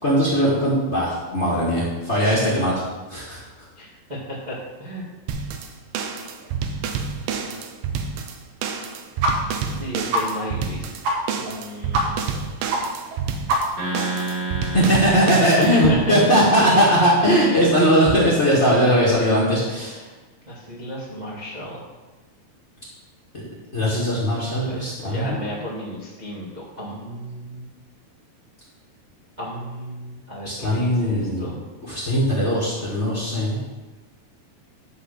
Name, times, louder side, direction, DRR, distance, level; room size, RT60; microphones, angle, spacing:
voice 1, 0.0-2.8 3.1-3.4 14.6-20.0 23.3-23.4 23.7-25.4 30.4-31.5 31.9-33.6, equal, 30° left, -6 dB, 1.4 m, -19 dB
voice 2, 3.8-4.2 4.5-5.0 9.7-10.9 11.4-12.2 15.4-16.4 20.4-21.9 24.6-27.7 29.4-31.6, left 1 dB, 30° right, -6 dB, 0.7 m, -33 dB
sound 1, 5.3-16.0, right 6 dB, 90° right, 2.5 m, -29 dB
sound 2, 9.2-9.3 9.6-9.7 10.1-10.2 10.6-10.7 11.0-11.2 11.4-11.6 11.9-12.0 12.3-12.4 12.7-12.8 13.1-13.2 13.5-13.9, right 1 dB, 70° right, 2.9 m, -22 dB
sound 3, 13.8-17.3, right 2 dB, 55° right, 3.6 m, -32 dB
11.0 x 4.1 x 6.6 m, 1.2 s
omnidirectional pair, 4.1 m